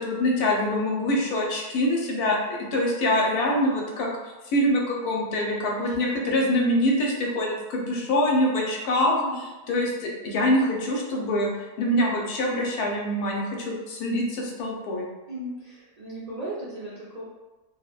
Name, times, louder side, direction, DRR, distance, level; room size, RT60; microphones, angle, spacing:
voice 1, 0.0-4.1 4.5-9.2 9.7-11.5 11.8-15.1, left 1 dB, 80° left, -1 dB, 1.1 m, -24 dB
voice 2, 9.1-9.4 15.3-17.3, right 1 dB, 60° right, -10 dB, 0.4 m, -36 dB
3.2 x 2.0 x 2.3 m, 1.1 s
omnidirectional pair, 1.6 m